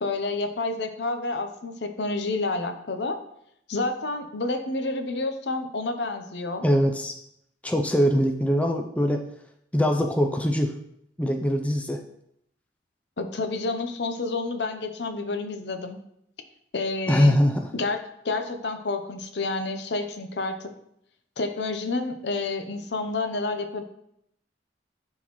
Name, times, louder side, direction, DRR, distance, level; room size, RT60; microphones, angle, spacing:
voice 1, 0.0-3.2 3.7-6.6 13.2-16.0 16.7-17.4 17.7-18.0 18.2-20.7 21.4-23.8, left 3 dB, 70° left, 7 dB, 0.7 m, -29 dB
voice 2, 6.6-7.1 7.6-9.2 9.7-10.7 11.2-12.0 17.1-17.7, equal, 10° left, 4 dB, 0.5 m, -22 dB
11.0 x 3.9 x 3.1 m, 0.74 s
head